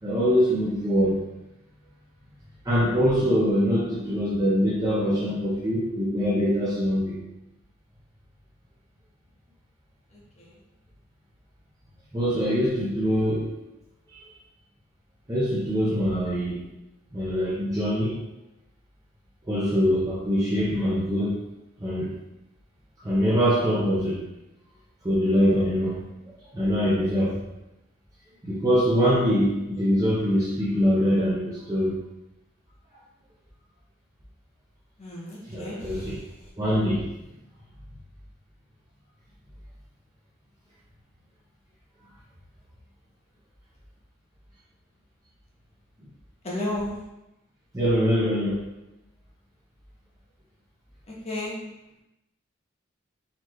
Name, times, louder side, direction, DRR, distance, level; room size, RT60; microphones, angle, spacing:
voice 1, 0.0-1.3 2.6-7.2 12.1-13.5 14.1-14.3 15.3-16.6 17.1-18.2 19.5-21.4 21.8-22.1 23.0-24.2 25.0-26.0 26.5-27.4 28.4-32.0 35.5-36.2 36.6-37.1 47.7-48.6, equal, 20° right, -8 dB, 0.7 m, -23 dB
voice 2, 35.0-35.9 46.4-46.9 51.1-51.6, left 1 dB, 35° left, -5 dB, 1.1 m, -32 dB
4.1 x 3.0 x 3.1 m, 0.93 s
head